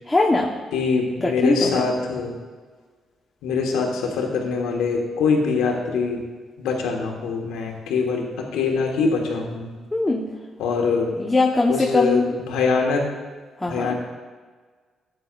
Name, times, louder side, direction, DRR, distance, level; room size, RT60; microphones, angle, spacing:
voice 1, 0.1-0.5 1.2-1.8 9.9-10.2 11.1-12.4 13.6-13.9, left 2 dB, 20° left, -1 dB, 1.2 m, -21 dB
voice 2, 0.7-2.4 3.4-6.2 6.6-9.7 10.6-11.1 11.7-13.0 13.7-13.9, left 4 dB, 85° left, 1 dB, 1.5 m, -23 dB
13.0 x 8.9 x 2.6 m, 1.5 s
supercardioid pair, 60°, 0 cm